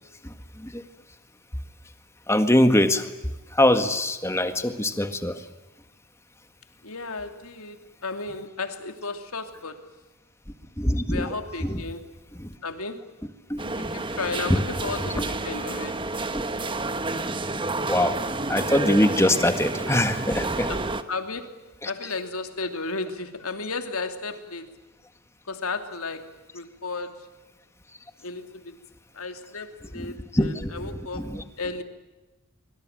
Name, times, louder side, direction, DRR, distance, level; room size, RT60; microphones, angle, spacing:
voice 1, 0.2-0.8 2.3-3.1 3.5-5.4 10.8-11.3 11.6-11.8 12.3-12.5 13.5-13.6 14.5-14.6 15.2-15.3 16.3-16.4 17.8-18.2 18.5-20.7 21.8-21.9 30.0-30.1 30.3-31.4, left 1 dB, 10° left, 8 dB, 1.8 m, -23 dB
voice 2, 6.8-9.9 11.1-12.1 12.6-13.1 13.8-16.1 20.7-20.8 21.1-21.5 21.8-24.7 25.5-27.2 28.2-28.8 29.1-31.3 31.6-31.8, left 3 dB, 80° left, 7 dB, 2.9 m, -34 dB
sound 1, 13.6-21.0, right 2 dB, 20° right, 1.2 m, -30 dB
24.5 x 24.5 x 9.1 m, 1.1 s
head